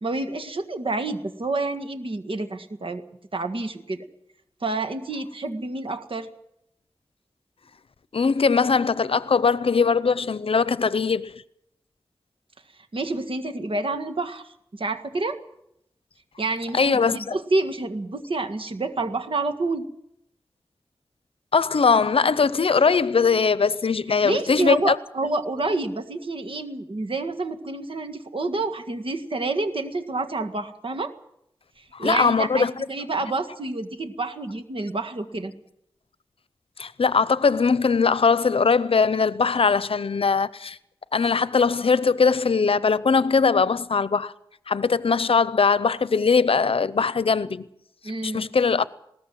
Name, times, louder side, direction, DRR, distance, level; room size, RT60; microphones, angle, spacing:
voice 1, 0.0-3.0 3.3-4.1 4.6-6.3 12.9-15.4 16.4-19.9 24.2-31.1 31.8-35.5 48.0-48.5, right 2 dB, 70° right, 1.7 m, -28 dB
voice 2, 8.1-11.3 16.7-17.3 21.5-25.0 31.9-32.7 36.8-40.8 41.1-44.3 44.7-47.6 48.2-48.8, left 5 dB, 80° left, 0.7 m, -21 dB
20.0 x 18.0 x 7.5 m
wide cardioid pair, 50°, 10 cm